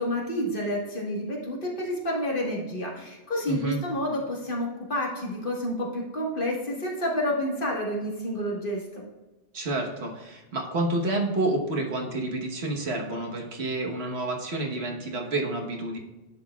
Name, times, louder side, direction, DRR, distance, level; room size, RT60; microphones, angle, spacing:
voice 1, 0.0-9.0, left 1 dB, 50° left, -2 dB, 1.7 m, -29 dB
voice 2, 3.5-3.8 9.5-16.0, right 2 dB, 70° right, 1 dB, 1.5 m, -29 dB
10.0 x 6.4 x 2.3 m, 1.1 s
omnidirectional pair, 1.1 m